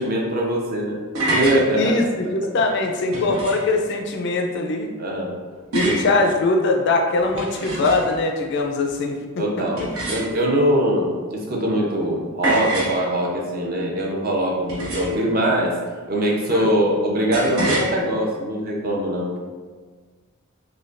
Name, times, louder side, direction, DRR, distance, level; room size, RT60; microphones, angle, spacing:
voice 1, 0.0-2.0 3.1-3.3 5.0-5.3 5.8-6.0 9.4-15.8 16.1-19.4, equal, 40° right, -2 dB, 0.6 m, -22 dB
sound 1, 1.2-1.6 3.1-3.7 5.7-6.1 7.2-8.2 9.8-10.6 12.4-13.0 14.7-15.3 17.3-17.9, right 2 dB, 80° right, 1.1 m, -26 dB
voice 2, 1.7-4.9 5.7-9.9 16.5-16.7, left 3 dB, 55° left, 3 dB, 0.3 m, -22 dB
5.0 x 2.2 x 2.4 m, 1.5 s
head